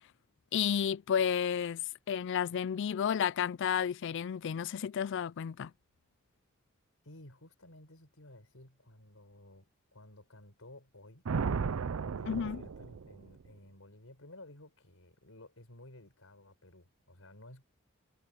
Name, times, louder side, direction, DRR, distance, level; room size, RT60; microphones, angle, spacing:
voice 1, 0.5-5.7 12.3-12.6, left 8 dB, 60° left, 0.4 m, -32 dB
voice 2, 7.0-11.2 12.0-17.6, left 1 dB, 75° left, 4.9 m, -55 dB
Thunder, 11.2-13.5, right 5 dB, 75° right, 0.5 m, -35 dB
head